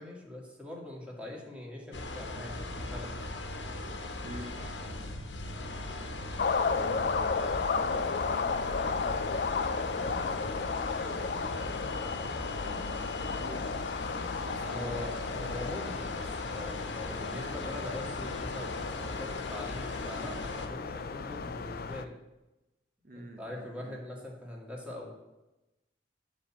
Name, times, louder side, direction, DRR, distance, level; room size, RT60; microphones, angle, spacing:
voice 1, 0.0-3.1 14.7-22.1 23.1-25.1, left 1 dB, 5° right, -2 dB, 1.9 m, -42 dB
sound 1, 1.9-20.7, left 2 dB, 70° left, 1.1 m, -39 dB
voice 2, 4.2-4.6 6.6-11.6 12.6-13.9 14.4-15.5 23.0-24.0, right 1 dB, 50° right, 2 dB, 0.8 m, -47 dB
sound 2, 6.4-22.0, left 5 dB, 55° left, 0.4 m, -34 dB
10.5 x 4.3 x 7.2 m, 1.0 s
head